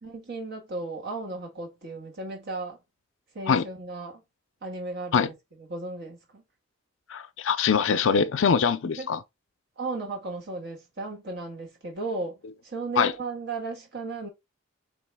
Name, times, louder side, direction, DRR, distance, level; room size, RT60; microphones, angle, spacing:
voice 1, 0.0-2.8 3.3-4.2 4.6-5.3 5.6-6.4 8.9-9.1 9.8-12.4 12.6-14.3, right 3 dB, 55° right, 1.6 m, -35 dB
voice 2, 7.1-9.2 13.0-13.1, left 6 dB, 70° left, 0.5 m, -23 dB
4.6 x 3.0 x 3.3 m
head